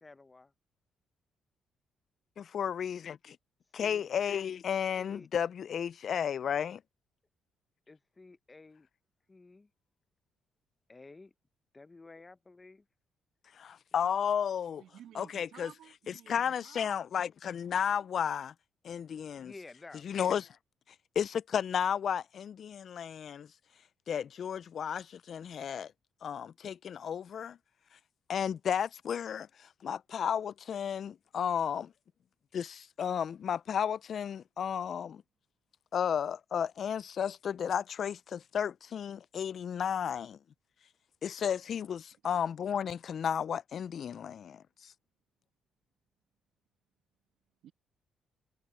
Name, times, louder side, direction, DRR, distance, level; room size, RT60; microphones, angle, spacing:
voice 1, 0.0-0.5 3.8-4.1 5.0-5.3 7.9-8.9 9.3-9.7 10.9-11.3 11.7-12.8 19.4-20.1, left 3 dB, 25° left, 0.9 m, -52 dB
voice 2, 2.4-3.4 3.7-6.8 13.6-14.8 15.1-15.7 16.1-18.5 18.8-19.5 20.0-20.6 21.2-23.5 24.1-25.9 26.2-27.6 28.3-31.9 32.5-35.2 35.9-40.4 41.2-44.9, left 8 dB, 55° left, 0.3 m, -33 dB
voice 3, 14.8-17.1 47.6-47.7, right 11 dB, 80° right, 2.0 m, -54 dB
cardioid pair, 90°, 0 cm